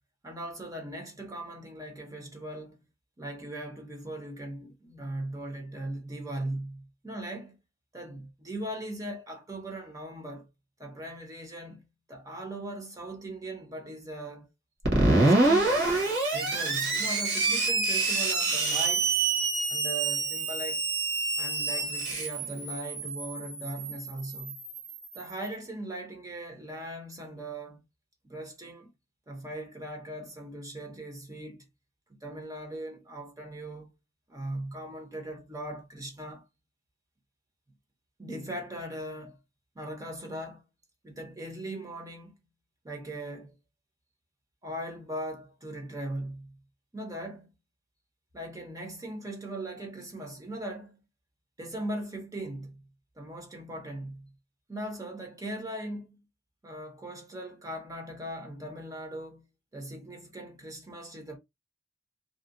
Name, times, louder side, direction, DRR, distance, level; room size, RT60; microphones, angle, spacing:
voice 1, 0.2-2.8 3.2-7.6 7.9-10.5 10.8-11.8 12.1-14.5 15.1-15.8 16.3-19.2 19.7-20.8 21.4-24.6 25.1-27.8 28.2-28.9 29.3-31.7 32.2-33.9 34.3-36.5 38.2-39.4 39.7-40.6 41.0-42.3 42.8-43.5 44.6-46.6 46.9-47.5 48.3-51.0 51.6-52.8 53.2-54.3 54.7-56.2 56.6-59.4 59.7-61.4, right 1 dB, 15° right, 0.7 m, -39 dB
Screech, 14.8-25.3, right 3 dB, 55° right, 1.1 m, -27 dB
2.6 x 2.2 x 2.5 m
head